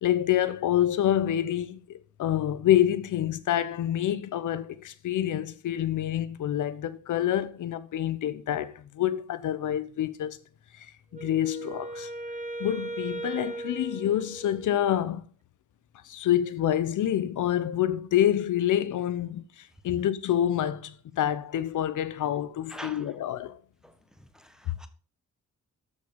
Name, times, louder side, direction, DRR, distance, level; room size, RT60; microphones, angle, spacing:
voice 1, 0.0-10.4 10.8-10.9 11.1-12.1 12.6-15.3 16.1-23.6, left 11 dB, 85° left, 0.9 m, -27 dB
Wind instrument woodwind instrument, 11.1-15.0, right 2 dB, 25° right, 1.6 m, -38 dB
voice 2, 22.7-23.2 23.8-24.9, right 1 dB, ahead, 1.4 m, -45 dB
13.0 x 6.5 x 5.3 m
wide cardioid pair, 140°, 30 cm